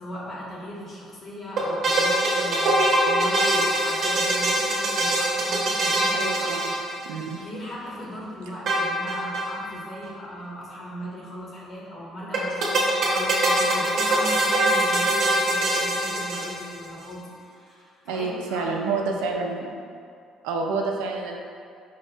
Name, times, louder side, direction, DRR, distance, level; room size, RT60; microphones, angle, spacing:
voice 1, 0.0-6.3 7.4-19.4, equal, 50° left, -4 dB, 0.9 m, -38 dB
sound 1, 1.6-7.3 8.7-9.5 9.8-9.9 10.0-10.1 12.3-16.8, right 1 dB, 65° right, 0.7 m, -23 dB
voice 2, 6.1-6.8 7.1-7.4 18.1-19.8 20.4-21.4, right 4 dB, 85° right, 1 dB, 0.3 m, -28 dB
4.5 x 2.1 x 2.6 m, 2.3 s
supercardioid pair, 70°, 0 cm